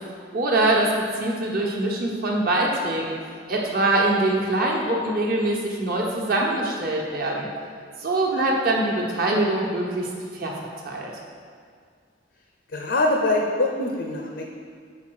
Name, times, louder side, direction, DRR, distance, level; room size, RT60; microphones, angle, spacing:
voice 1, 0.3-3.2 3.5-7.5 8.0-10.5 10.8-11.1, right 2 dB, 50° right, -2 dB, 1.1 m, -23 dB
voice 2, 12.7-14.4, left 2 dB, 70° left, 1 dB, 0.6 m, -23 dB
5.6 x 4.6 x 6.2 m, 2.1 s
head